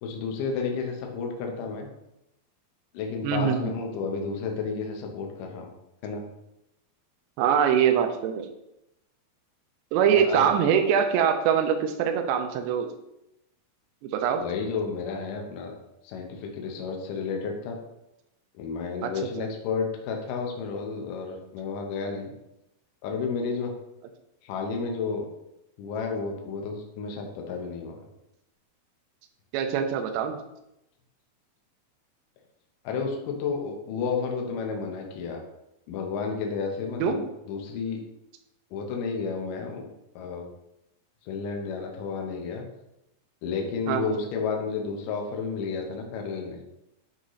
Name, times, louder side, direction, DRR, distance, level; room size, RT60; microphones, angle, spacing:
voice 1, 0.0-1.9 2.9-5.7 6.0-6.2 10.1-10.5 14.4-15.7 16.0-17.8 18.6-22.3 23.0-23.7 24.4-25.3 25.8-28.1 32.8-35.4 35.9-38.0 38.7-39.9 40.2-40.5 41.3-42.6 43.4-46.6, left 5 dB, 90° left, 2 dB, 1.9 m, -31 dB
voice 2, 3.2-3.7 7.4-8.5 9.9-12.9 14.0-14.4 19.0-19.1 19.4-19.5 29.5-30.4 37.0-37.2 43.9-44.1, right 8 dB, 80° right, 5 dB, 2.6 m, -23 dB
8.6 x 3.1 x 4.0 m, 0.87 s
omnidirectional pair, 5.2 m